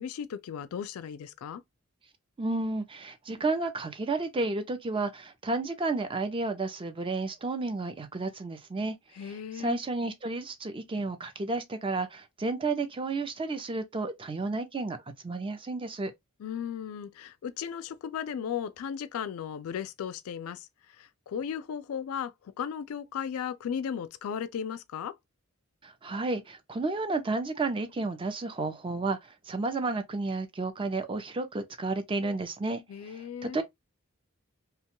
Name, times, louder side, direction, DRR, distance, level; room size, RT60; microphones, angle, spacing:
voice 1, 0.0-1.6 9.1-9.8 16.4-25.2 32.9-33.6, left 8 dB, 75° left, 0.3 m, -36 dB
voice 2, 2.4-9.0 9.2-15.0 15.2-16.1 25.8-33.6, right 3 dB, 25° right, 0.5 m, -32 dB
2.8 x 2.2 x 2.9 m
head